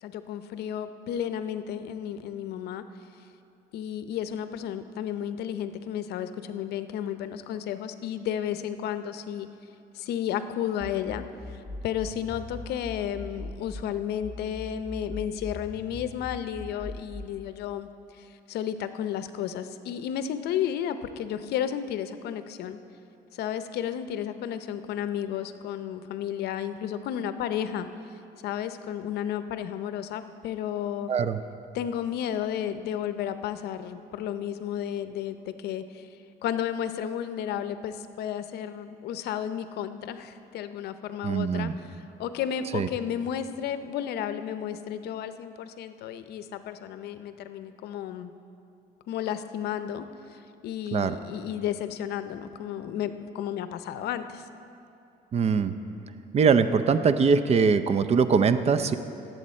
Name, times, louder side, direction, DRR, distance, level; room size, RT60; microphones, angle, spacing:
voice 1, 0.0-2.8 3.7-9.5 9.9-17.9 18.2-22.8 23.3-27.9 28.4-31.1 31.7-36.1 36.4-41.7 42.0-48.3 49.1-54.5, left 9 dB, 75° left, 11 dB, 0.6 m, -32 dB
sound 1, 10.8-13.8 14.2-17.2, left 2 dB, 5° right, 1.3 m, -40 dB
voice 2, 31.1-31.4 41.2-41.7 42.7-42.9 50.9-51.1 55.3-55.7 56.3-59.0, right 5 dB, 40° right, 11 dB, 0.5 m, -22 dB
17.5 x 7.8 x 4.3 m, 2.7 s
cardioid pair, 110°, 17 cm